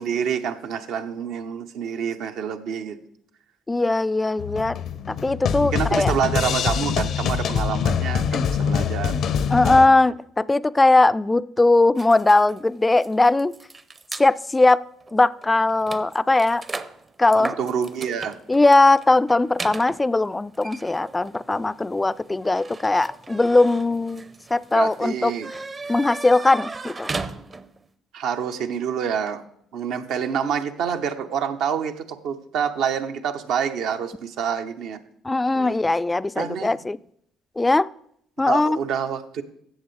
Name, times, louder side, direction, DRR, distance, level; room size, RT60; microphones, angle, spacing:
voice 1, 0.0-3.0 5.6-9.1 17.4-18.4 24.7-25.5 28.1-29.4 29.7-35.0 35.5-35.8 36.4-36.7 38.5-39.4, right 7 dB, 70° right, 7 dB, 0.8 m, -27 dB
voice 2, 3.7-4.8 5.1-6.1 8.3-8.5 9.1-9.2 9.5-13.5 14.2-14.8 15.1-16.6 17.2-17.5 18.5-25.3 25.9-27.1 35.2-37.0 37.6-37.9 38.4-38.8, left 2 dB, 20° left, 17 dB, 0.3 m, -19 dB
sound 1, 4.4-9.9, left 7 dB, 60° left, 0.6 m, -24 dB
sound 2, 12.0-14.3 15.0-15.1 15.4-27.9, right 3 dB, 30° right, 0.7 m, -37 dB
15.5 x 6.9 x 3.2 m, 0.69 s
hypercardioid pair, 60°, 0 cm